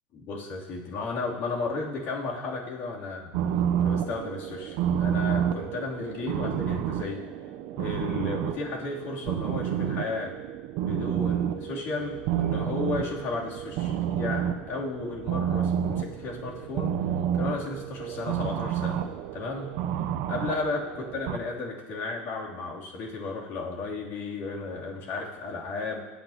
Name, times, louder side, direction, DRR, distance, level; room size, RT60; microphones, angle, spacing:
voice 1, 0.1-3.3 3.8-7.2 7.7-10.3 10.8-16.9 17.4-19.7 20.3-26.0, left 3 dB, 55° left, -3 dB, 3.0 m, -34 dB
sound 1, 3.3-21.4, right 9 dB, 65° right, 0.7 m, -30 dB
23.5 x 9.2 x 2.9 m, 1.2 s
supercardioid pair, 135°, 5 cm